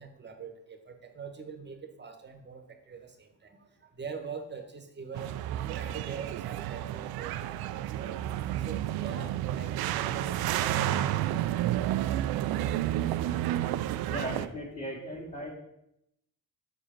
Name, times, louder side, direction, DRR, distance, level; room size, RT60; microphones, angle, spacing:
voice 1, 0.0-5.3 5.6-8.2 8.6-12.6 13.8-13.9, right 5 dB, 25° right, 7 dB, 1.2 m, -44 dB
sound 1, 5.1-14.5, right 13 dB, 65° right, 0.5 m, -31 dB
voice 2, 14.1-15.5, equal, 10° left, -6 dB, 2.0 m, -37 dB
6.5 x 4.9 x 4.4 m, 0.79 s
supercardioid pair, 70°, 39 cm